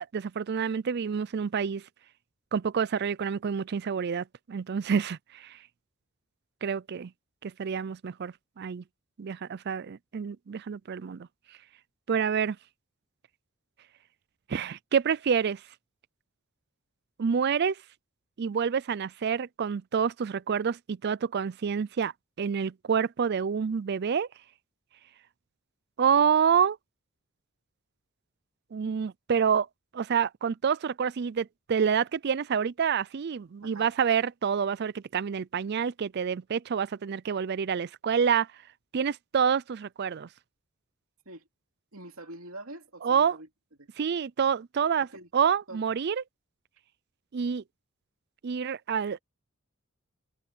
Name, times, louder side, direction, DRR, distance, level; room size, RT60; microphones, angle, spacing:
voice 1, 0.1-1.8 2.5-5.5 6.6-7.1 7.4-8.8 9.2-11.3 12.1-12.6 14.5-15.6 17.2-17.8 18.4-22.1 22.4-24.3 26.0-26.8 28.7-29.7 29.9-38.5 38.9-40.3 43.0-43.4 44.0-45.1 45.3-46.2 47.3-47.6 48.4-49.2, right 7 dB, 50° right, 0.4 m, -27 dB
voice 2, 33.6-33.9 41.2-41.4 41.9-43.5 43.8-43.9 45.0-45.3 45.7-45.8, right 2 dB, 80° right, 2.8 m, -45 dB
head